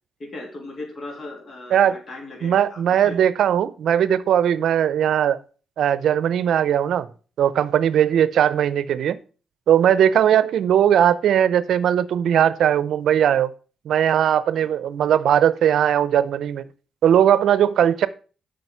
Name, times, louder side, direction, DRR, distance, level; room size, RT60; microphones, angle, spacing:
voice 1, 0.2-3.2 10.3-10.4 14.5-14.7 17.8-17.9, left 2 dB, 50° left, 2.8 m, -38 dB
voice 2, 2.4-5.4 5.8-7.1 7.4-9.2 9.7-13.5 13.9-16.6 17.0-18.1, right 9 dB, 75° right, 0.6 m, -19 dB
7.9 x 5.3 x 5.6 m
cardioid pair, 70°, 0 cm